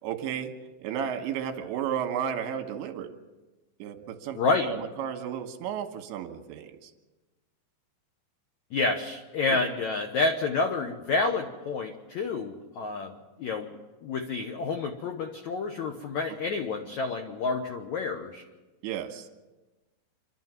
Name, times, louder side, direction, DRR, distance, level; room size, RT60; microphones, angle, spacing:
voice 1, 0.0-0.5 0.8-3.1 3.8-6.9 9.5-9.6 18.8-19.3, right 8 dB, 85° right, 6 dB, 3.7 m, -33 dB
voice 2, 4.3-4.7 8.7-13.7 14.0-18.4, left 3 dB, 90° left, 4 dB, 1.6 m, -29 dB
28.0 x 12.5 x 7.5 m, 1.2 s
omnidirectional pair, 5.1 m